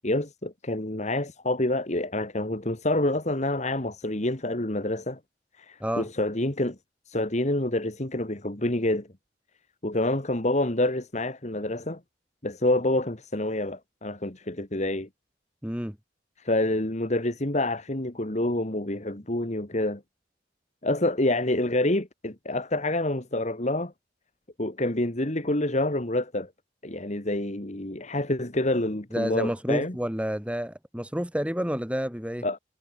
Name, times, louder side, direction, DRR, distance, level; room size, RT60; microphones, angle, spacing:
voice 1, 0.0-5.2 5.6-6.8 7.1-9.1 9.8-12.0 12.4-15.1 16.4-20.0 20.8-23.9 24.6-26.5 26.8-30.0 32.4-32.6, left 1 dB, 40° left, 2.2 m, -27 dB
voice 2, 15.6-16.0 29.1-32.5, equal, 5° right, 2.0 m, -29 dB
head